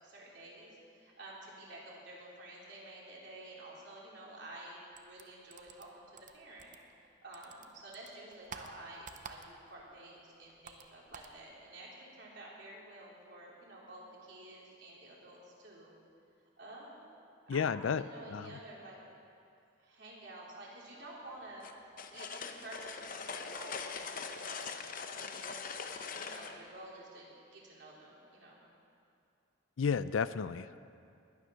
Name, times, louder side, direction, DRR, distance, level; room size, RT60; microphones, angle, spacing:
voice 1, 0.0-6.7 7.2-15.9 16.6-17.1 17.5-19.0 19.8-21.6 22.1-24.7 25.1-28.6, right 1 dB, 55° right, -4 dB, 3.6 m, -51 dB
sound 1, 4.9-7.1 7.3-9.8 10.1-11.4, right 5 dB, 40° right, 0.7 m, -51 dB
voice 2, 17.5-18.0 18.3-18.6 29.8-30.8, left 6 dB, 75° left, 15 dB, 0.4 m, -32 dB
sound 2, 21.6-26.6, left 5 dB, 40° left, 0.7 m, -42 dB
20.5 x 9.6 x 6.3 m, 2.5 s
head